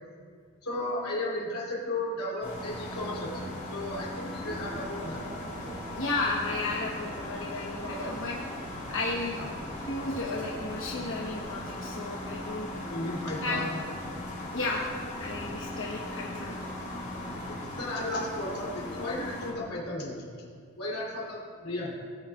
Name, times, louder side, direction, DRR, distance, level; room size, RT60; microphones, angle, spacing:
voice 1, 0.6-5.2 7.8-8.1 9.4-9.5 12.8-13.8 15.7-15.8 17.3-20.3 20.8-21.9, left 1 dB, 85° left, -3 dB, 2.8 m, -35 dB
sound 1, 2.4-19.5, left 1 dB, 35° left, 2.3 m, -38 dB
sound 2, 4.4-11.7, right 1 dB, 25° right, 0.5 m, -45 dB
voice 2, 5.9-8.4 8.8-9.4 9.9-12.8 13.4-13.7 14.5-14.9 15.2-16.6, left 3 dB, 60° left, -3 dB, 1.0 m, -33 dB
18.5 x 8.8 x 2.4 m, 2.2 s
head